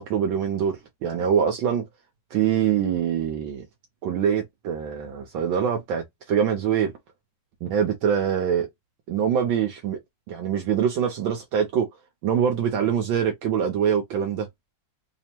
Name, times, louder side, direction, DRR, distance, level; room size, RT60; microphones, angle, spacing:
voice 1, 0.0-1.8 2.3-3.7 4.0-6.9 7.6-8.7 9.1-10.0 10.3-11.9 12.2-14.5, right 8 dB, 75° right, 1.4 m, -24 dB
3.5 x 2.1 x 4.3 m
omnidirectional pair, 2.3 m